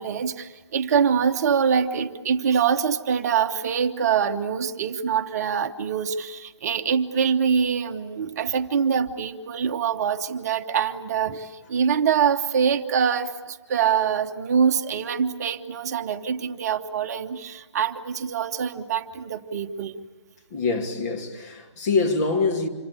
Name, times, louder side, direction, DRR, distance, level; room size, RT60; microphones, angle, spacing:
voice 1, 0.0-19.9, right 7 dB, 35° right, 1.1 m, -24 dB
voice 2, 20.5-22.7, left 4 dB, 35° left, 2.6 m, -24 dB
27.0 x 24.5 x 8.5 m
figure-of-eight pair, 140°, 15 cm